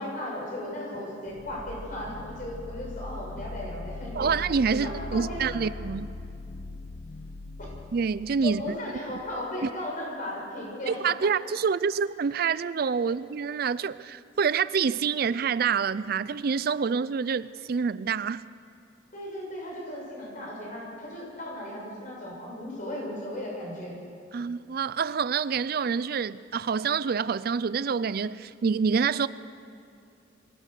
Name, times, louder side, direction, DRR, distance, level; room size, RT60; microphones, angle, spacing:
voice 1, 0.0-4.3 4.7-5.7 7.6-7.8 8.4-11.3 13.0-13.1 19.1-23.9, left 1 dB, 45° left, -2 dB, 7.0 m, -36 dB
sound 1, 1.3-9.0, left 2 dB, 65° left, 1.1 m, -40 dB
voice 2, 4.2-6.1 7.9-8.8 10.9-18.4 24.3-29.3, right 6 dB, 55° right, 17 dB, 0.4 m, -27 dB
24.5 x 16.5 x 6.7 m, 2.5 s
head